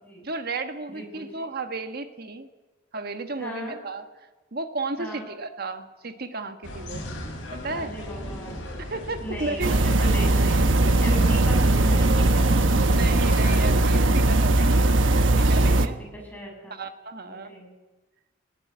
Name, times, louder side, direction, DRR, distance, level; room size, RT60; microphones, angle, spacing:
voice 1, 0.2-2.5 2.9-4.1 4.5-7.0 7.5-7.9 8.8-9.7 12.9-14.8 15.1-16.0 16.7-17.5, right 3 dB, 50° right, 8 dB, 1.4 m, -33 dB
voice 2, 0.9-1.4 3.4-3.8 5.0-5.3 7.8-8.6 9.2-10.7 11.0-12.5 15.6-15.8 16.1-16.8 17.3-17.7, right 1 dB, 10° left, -1 dB, 6.8 m, -37 dB
sound 1, 6.6-13.9, left 1 dB, 65° left, 7.3 m, -38 dB
sound 2, 9.6-15.9, right 2 dB, 70° right, 1.1 m, -19 dB
18.5 x 18.5 x 9.3 m, 1.2 s
head